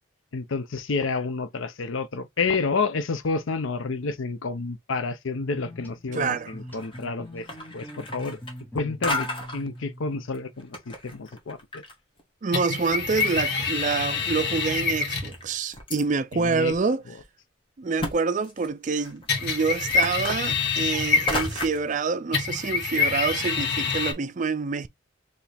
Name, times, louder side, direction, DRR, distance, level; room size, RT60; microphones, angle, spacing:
voice 1, 0.3-7.5 7.7-8.4 8.7-11.8 16.3-16.7, left 4 dB, 75° left, 0.6 m, -29 dB
sound 1, 5.4-10.6, equal, 10° left, 0.8 m, -42 dB
voice 2, 6.1-6.5 12.4-17.0 17.8-24.9, right 4 dB, 40° right, 0.4 m, -27 dB
sound 2, 6.7-7.1 7.4-8.8 9.0-9.6 10.3-11.9 12.2-12.3 12.9-13.0 13.2-14.0 14.5-14.6 15.3-16.0 16.7-16.8 17.2-17.3 18.0-18.1 18.4-21.9, left 1 dB, 25° left, 1.4 m, -33 dB
sound 3, 12.5-15.4 19.3-21.7 22.3-24.1, left 5 dB, 55° left, 1.7 m, -26 dB
4.7 x 3.0 x 3.4 m
head